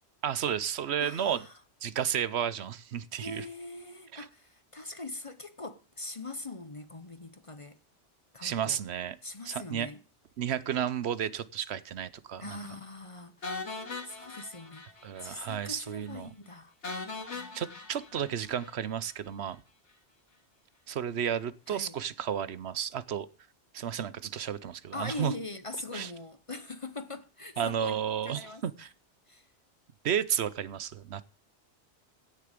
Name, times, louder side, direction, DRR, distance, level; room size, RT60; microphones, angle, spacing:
voice 1, 0.2-1.4 1.8-3.4 4.1-4.3 8.4-9.2 9.5-9.9 10.4-12.6 15.0-16.3 17.5-19.6 20.9-23.3 23.7-25.3 25.9-26.1 27.6-28.9 30.0-31.2, right 9 dB, 70° right, 1.0 m, -32 dB
voice 2, 1.0-1.5 3.2-7.8 8.3-8.8 9.2-10.0 12.4-13.5 14.0-14.8 15.2-16.7 21.7-21.9 24.9-28.0 28.2-28.6 29.3-29.5, left 2 dB, 30° left, 0.8 m, -42 dB
sound 1, 13.4-15.3 15.6-15.7 16.1-16.2 16.8-19.1, left 3 dB, 80° left, 2.4 m, -40 dB
16.0 x 6.8 x 5.0 m
omnidirectional pair, 1.2 m